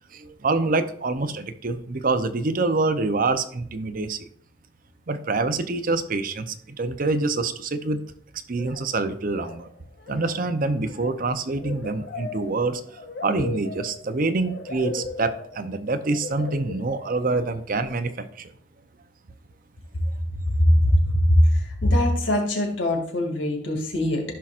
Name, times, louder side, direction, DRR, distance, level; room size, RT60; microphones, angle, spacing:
voice 1, 0.1-4.3 5.1-8.0 8.5-9.7 10.1-18.5, right 3 dB, 50° right, 10 dB, 0.7 m, -26 dB
sound 1, 8.6-9.0 9.3-9.7 10.0-17.6, left 3 dB, 60° left, 0.7 m, -38 dB
voice 2, 20.6-24.2, left 1 dB, 80° left, 1 dB, 2.4 m, -21 dB
14.5 x 5.8 x 2.5 m, 0.62 s
head